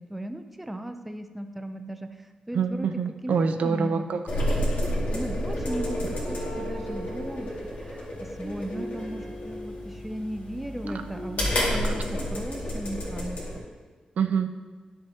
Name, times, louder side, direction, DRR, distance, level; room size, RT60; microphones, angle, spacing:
voice 1, 0.0-2.9 3.2-4.1 5.1-13.4, right 1 dB, 5° right, 7 dB, 0.4 m, -36 dB
voice 2, 2.5-4.2 11.8-11.9 14.2-14.5, right 6 dB, 75° right, 7 dB, 0.5 m, -25 dB
sound 1, 4.3-13.6, equal, 75° left, 2.1 m, -31 dB
sound 2, 5.7-10.6 10.8-12.0, equal, 30° left, 1.8 m, -39 dB
11.0 x 6.7 x 2.8 m, 1.4 s
wide cardioid pair, 160°, 2 cm